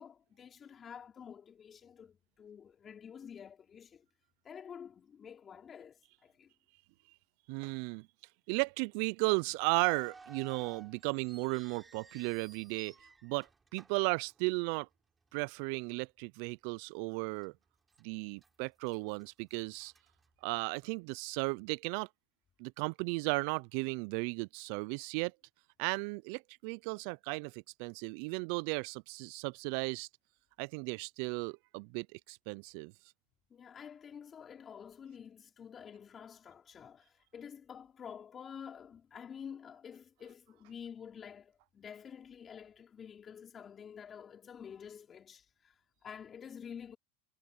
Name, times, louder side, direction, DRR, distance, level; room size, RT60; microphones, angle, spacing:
voice 1, 0.0-4.0 4.4-6.5 33.5-47.0, left 7 dB, 30° left, 4.7 m, -49 dB
voice 2, 7.5-8.1 8.5-12.9 13.2-14.9 15.3-17.5 18.0-19.9 20.4-22.1 22.6-25.3 25.8-30.1 30.6-32.9, right 29 dB, 60° right, 0.4 m, -35 dB
sound 1, 9.6-14.9 15.2-15.3 16.0-16.3 16.7-16.8 17.4-18.0 18.4-20.8, right 4 dB, 15° right, 6.1 m, -57 dB
hypercardioid pair, 110°, 0 cm